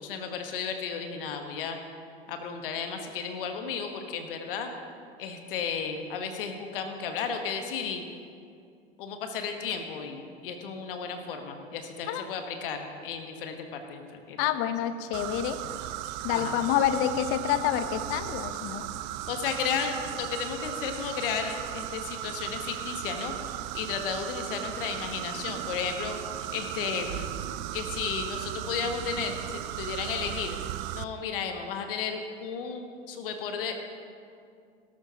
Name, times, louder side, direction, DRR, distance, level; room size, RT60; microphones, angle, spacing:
voice 1, 0.0-1.8 2.3-4.7 5.2-8.0 9.0-13.5 13.9-14.6 16.3-16.6 19.3-23.3 23.7-26.2 26.5-27.3 27.7-30.6 30.9-33.7, left 6 dB, 65° left, 5 dB, 1.3 m, -33 dB
voice 2, 14.4-15.6 16.2-18.9, left 10 dB, 45° left, 10 dB, 0.9 m, -27 dB
sound 1, 15.1-31.0, right 14 dB, 50° right, 0.5 m, -36 dB
17.5 x 12.5 x 2.9 m, 2.3 s
figure-of-eight pair, 80°, 30 cm